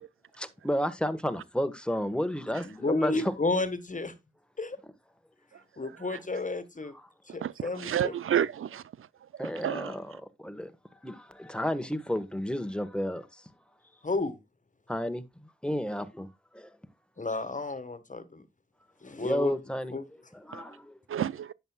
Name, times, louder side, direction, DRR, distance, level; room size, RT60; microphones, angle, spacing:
voice 1, 0.4-3.3 9.4-10.7 11.0-13.4 14.9-16.3 16.5-16.7 19.2-20.0 20.3-21.0, equal, 5° left, 1.4 m, -32 dB
voice 2, 2.6-4.1 4.6-4.8 5.8-6.9 7.3-8.1 14.0-14.4 17.2-18.4 19.0-19.5 19.9-20.0, left 3 dB, 40° left, 1.6 m, -32 dB
voice 3, 7.4-8.8 9.6-9.9 20.5-20.6 21.1-21.5, right 10 dB, 85° right, 0.4 m, -29 dB
10.5 x 8.0 x 2.3 m
cardioid pair, 40°, 21 cm